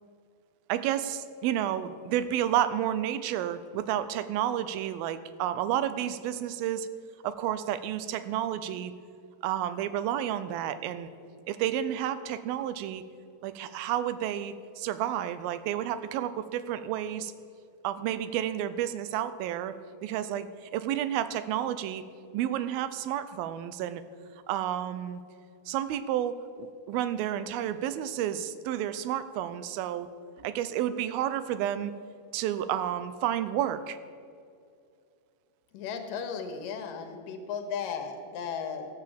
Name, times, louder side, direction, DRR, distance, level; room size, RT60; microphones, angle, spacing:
voice 1, 0.7-6.9 7.2-8.9 9.4-11.1 11.5-13.0 13.4-17.3 17.8-22.0 22.3-24.0 24.5-25.2 25.7-30.1 30.4-31.9 32.3-34.0, right 11 dB, 90° right, 13 dB, 2.5 m, -31 dB
voice 2, 35.7-38.9, left 6 dB, 75° left, 6 dB, 2.7 m, -35 dB
13.5 x 7.7 x 7.5 m, 2.4 s
omnidirectional pair, 4.2 m